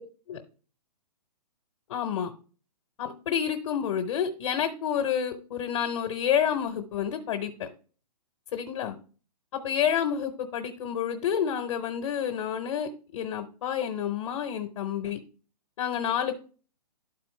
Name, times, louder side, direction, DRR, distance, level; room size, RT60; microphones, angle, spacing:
voice 1, 1.9-2.3 3.0-7.7 8.5-8.9 9.5-15.2 15.8-16.4, left 8 dB, 50° left, 5 dB, 0.9 m, -29 dB
11.5 x 4.3 x 3.2 m, 0.39 s
hypercardioid pair, 135°, 21 cm